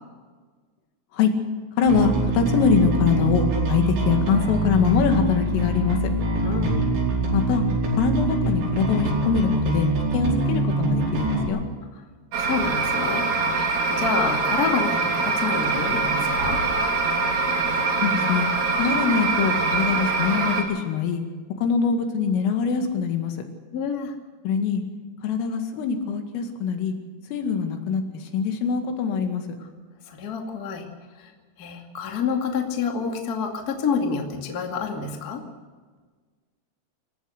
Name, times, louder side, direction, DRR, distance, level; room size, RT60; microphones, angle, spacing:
voice 1, 1.8-6.1 7.3-7.6 7.9-11.6 18.0-18.5 18.8-21.2 21.6-23.4 24.4-24.8 25.2-26.9 27.3-29.4, left 6 dB, 80° left, 5 dB, 4.7 m, -23 dB
Bass guitar, 1.9-11.5, right 2 dB, 70° right, 7.2 m, -24 dB
voice 2, 6.4-6.9 11.9-12.0 12.4-16.6 23.7-24.1 29.6-29.7 30.0-30.9 31.2-31.3 31.6-35.4, left 5 dB, 40° left, 2 dB, 1.3 m, -28 dB
sound 1, 12.3-20.6, right 4 dB, 40° right, 3.8 m, -23 dB
27.0 x 14.5 x 6.6 m, 1.5 s
omnidirectional pair, 5.8 m